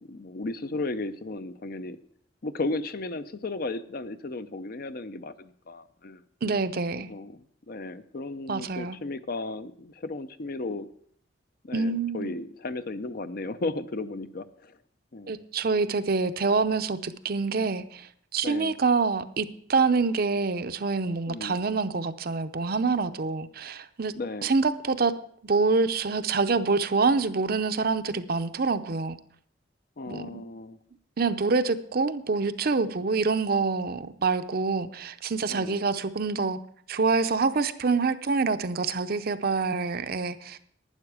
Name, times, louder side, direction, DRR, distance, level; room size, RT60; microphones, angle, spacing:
voice 1, 0.0-2.0 2.4-6.2 7.1-10.9 11.6-14.8 15.1-15.4 18.4-18.8 21.3-21.6 24.1-24.5 30.0-30.8 35.5-35.8, left 2 dB, 50° left, 12 dB, 0.6 m, -35 dB
voice 2, 6.4-7.1 8.5-9.0 11.7-12.3 15.3-24.1 24.4-25.1 25.4-29.2 30.1-30.4 31.2-36.6 36.9-40.6, right 4 dB, 50° right, 11 dB, 0.6 m, -26 dB
11.5 x 9.7 x 4.8 m, 0.62 s
head